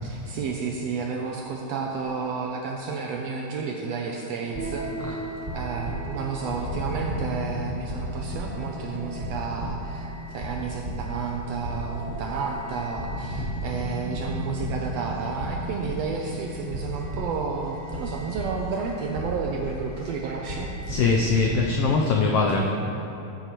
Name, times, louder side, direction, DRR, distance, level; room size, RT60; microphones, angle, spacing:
voice 1, 0.0-5.2 5.5-20.7, right 5 dB, 85° right, 0 dB, 1.5 m, -31 dB
sound 1, 4.5-21.6, right 1 dB, 50° right, 0.5 m, -34 dB
voice 2, 20.9-22.7, left 4 dB, 90° left, 0 dB, 1.3 m, -22 dB
14.0 x 7.9 x 3.0 m, 2.9 s
omnidirectional pair, 3.4 m